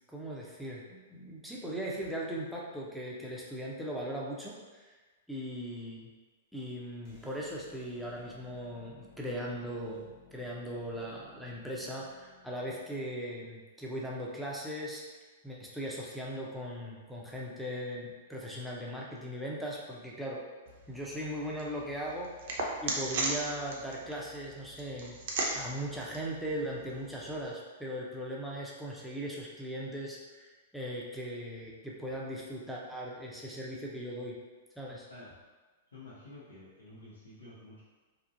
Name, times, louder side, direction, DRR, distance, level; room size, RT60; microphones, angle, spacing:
voice 1, 0.1-4.9 5.3-6.1 6.5-15.0 15.4-20.4 20.9-25.2 25.5-34.4 34.8-35.1, equal, ahead, -5 dB, 0.5 m, -39 dB
sound 1, 7.0-13.3, left 5 dB, 45° left, 0.8 m, -60 dB
sound 2, 20.7-27.5, right 2 dB, 60° right, 0.5 m, -38 dB
voice 2, 35.1-35.4 35.9-37.8, left 2 dB, 85° left, -9 dB, 0.6 m, -50 dB
2.5 x 2.0 x 2.5 m, 1.3 s
hypercardioid pair, 115°, 0 cm